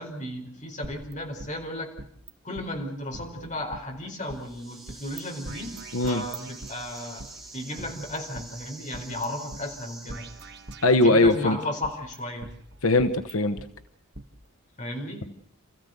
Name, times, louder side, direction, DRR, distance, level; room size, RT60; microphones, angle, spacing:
voice 1, 0.0-1.9 2.4-5.7 6.1-7.3 7.5-10.2 11.0-12.5 14.8-15.3, left 1 dB, 35° left, 2 dB, 4.6 m, -34 dB
sound 1, 0.8-2.3 2.6-2.7 3.1-4.4 4.9-5.2 5.5-7.3 7.8-9.3 9.5-9.6 10.1-11.5 11.8-13.7 14.2-14.3, right 2 dB, 55° right, 1.6 m, -43 dB
sound 2, 4.1-10.8, right 2 dB, ahead, 6.9 m, -46 dB
voice 2, 5.9-6.2 10.8-11.6 12.8-13.6, left 2 dB, 90° left, 8 dB, 1.1 m, -20 dB
28.5 x 15.0 x 8.0 m, 0.70 s
head